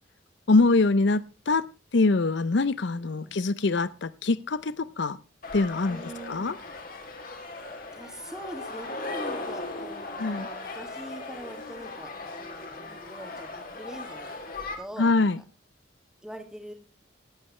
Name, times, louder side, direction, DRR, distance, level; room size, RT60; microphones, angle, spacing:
voice 1, 0.5-1.7 1.9-5.2 5.5-6.0 6.3-6.6 10.2-10.5 15.0-15.4, left 3 dB, 65° left, 0.6 m, -24 dB
voice 2, 3.0-3.4 5.9-6.6 7.9-14.3 14.8-15.4 16.2-16.7, equal, 5° right, 2.0 m, -43 dB
sound 1, 5.4-14.8, left 2 dB, 45° left, 2.8 m, -38 dB
18.5 x 8.6 x 3.2 m
head